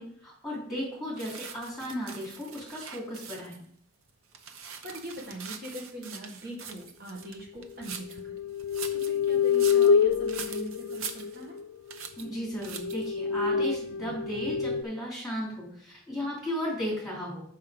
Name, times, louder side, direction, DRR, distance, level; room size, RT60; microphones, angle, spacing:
voice 1, 0.0-3.6 12.2-17.4, equal, ahead, -5 dB, 3.3 m, -35 dB
sound 1, 1.2-3.7 4.1-8.2 8.6-11.6 11.9-12.3 12.6-13.1, right 6 dB, 85° right, 0.9 m, -43 dB
voice 2, 4.8-8.3 8.9-11.6, right 1 dB, 45° right, 0 dB, 1.7 m, -42 dB
sound 2, 8.1-11.7 12.3-12.4 12.7-14.8, left 6 dB, 80° left, 0.4 m, -26 dB
6.9 x 5.7 x 5.2 m, 0.63 s
head